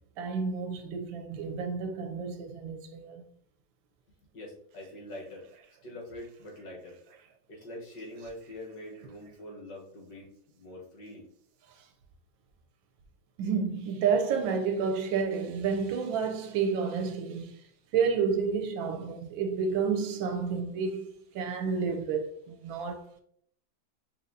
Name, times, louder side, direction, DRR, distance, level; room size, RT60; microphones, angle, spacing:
voice 1, 0.2-3.2 11.8-11.9 13.4-17.6 17.9-23.1, right 5 dB, 80° right, 1.3 m, -30 dB
voice 2, 4.3-5.5 5.8-7.0 7.5-10.3 10.5-11.3, left 1 dB, 65° left, 1.7 m, -44 dB
5.6 x 2.9 x 2.6 m
omnidirectional pair, 2.2 m